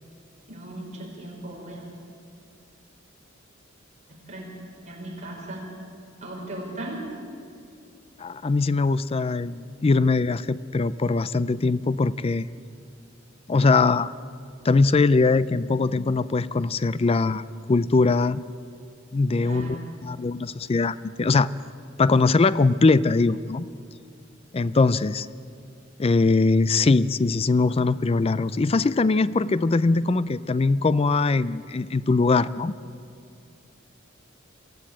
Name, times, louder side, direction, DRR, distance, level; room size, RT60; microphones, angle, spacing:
voice 1, 0.5-1.8 4.3-4.5 4.8-5.7 6.2-7.0 19.4-19.9, right 1 dB, 35° right, -2 dB, 5.1 m, -37 dB
voice 2, 8.2-12.5 13.5-14.1 14.6-17.4 17.7-18.4 19.1-21.5 22.0-23.7 24.5-25.3 26.0-32.7, left 3 dB, 30° left, 17 dB, 0.4 m, -21 dB
23.5 x 14.5 x 8.8 m, 2.4 s
head